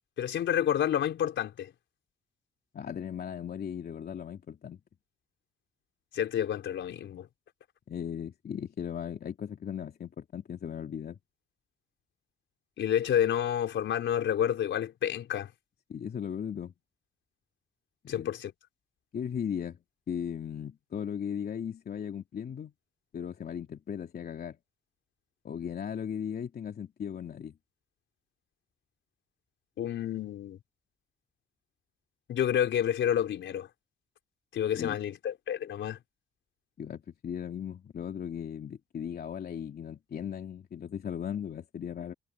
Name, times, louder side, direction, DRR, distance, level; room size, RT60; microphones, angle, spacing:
voice 1, 0.2-1.7 6.1-7.3 12.8-15.5 18.1-18.5 29.8-30.6 32.3-33.7 34.5-36.0, left 10 dB, 70° left, 4.2 m, -29 dB
voice 2, 2.7-4.8 7.9-11.2 15.9-16.7 18.0-18.3 19.1-19.8 20.1-22.7 23.1-24.6 25.4-27.5 34.8-35.0 36.8-42.1, left 8 dB, 50° left, 3.0 m, -37 dB
cardioid pair, 90°, 20 cm